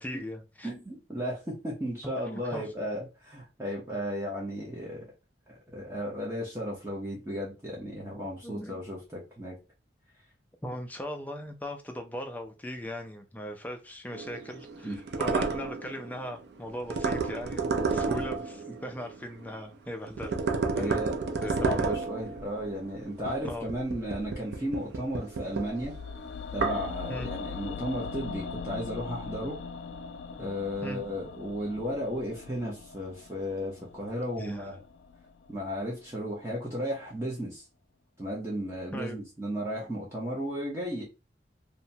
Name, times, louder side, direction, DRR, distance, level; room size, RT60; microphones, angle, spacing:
voice 1, 0.0-0.7 2.5-2.7 8.4-8.8 10.6-20.4 20.8-21.0 21.4-22.0 23.4-23.6 27.1-27.3 30.8-31.0 34.4-34.8 38.9-39.2, equal, 10° left, 0.3 m, -39 dB
voice 2, 0.6-5.1 5.5-9.6 14.8-15.0 17.7-18.1 20.7-25.9 26.5-29.6 30.4-34.8 35.5-37.6 38.2-41.0, equal, 15° right, 0.7 m, -34 dB
sound 1, 14.1-19.7 20.1-26.9, right 4 dB, 70° right, 0.4 m, -32 dB
sound 2, 25.8-35.9 36.2-36.3, left 5 dB, 85° left, 0.3 m, -41 dB
2.8 x 2.1 x 2.7 m
head